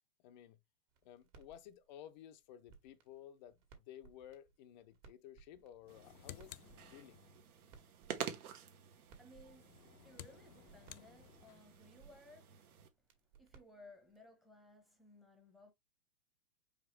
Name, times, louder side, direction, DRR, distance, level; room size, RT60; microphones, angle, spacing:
voice 1, 0.2-0.6 1.0-7.2, left 11 dB, 30° left, 0.5 m, -55 dB
sound 1, 0.9-14.3, right 6 dB, 50° right, 1.8 m, -66 dB
sound 2, 5.8-7.5 9.5-11.8, left 12 dB, 80° left, 0.6 m, -56 dB
sound 3, 5.9-12.9, right 8 dB, 65° right, 1.1 m, -50 dB
voice 2, 9.1-12.7 13.3-15.7, left 1 dB, ahead, 0.8 m, -61 dB
4.9 x 3.3 x 3.2 m
hypercardioid pair, 125°, 47 cm